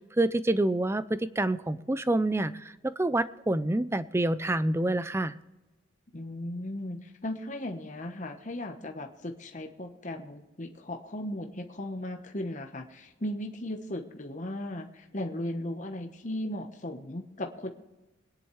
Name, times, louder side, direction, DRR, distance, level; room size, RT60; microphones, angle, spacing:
voice 1, 0.2-5.4, right 1 dB, 10° right, 14 dB, 0.4 m, -27 dB
voice 2, 6.1-17.7, left 1 dB, 35° left, 4 dB, 1.0 m, -37 dB
24.0 x 10.0 x 3.2 m, 1.1 s
head